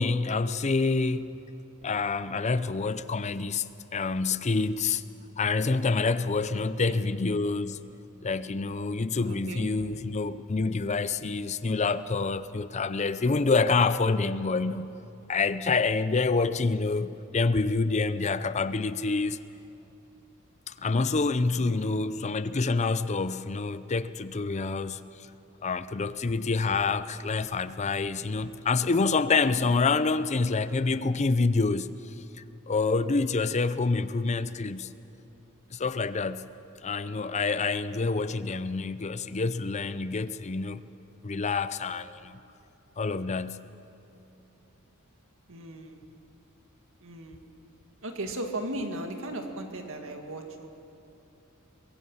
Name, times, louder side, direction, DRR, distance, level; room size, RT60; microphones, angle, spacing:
voice 1, 0.0-1.4 1.8-5.0 5.4-7.8 8.2-15.0 15.3-19.4 20.7-25.0 25.6-31.9 32.7-34.9 35.7-36.5 36.8-40.8 41.2-42.4 43.0-43.7, left 4 dB, 30° left, 0.6 m, -27 dB
voice 2, 9.2-9.9 21.5-22.0 45.5-46.0 47.0-47.4 48.0-50.7, right 1 dB, 65° right, 2.1 m, -37 dB
23.0 x 22.5 x 5.6 m
head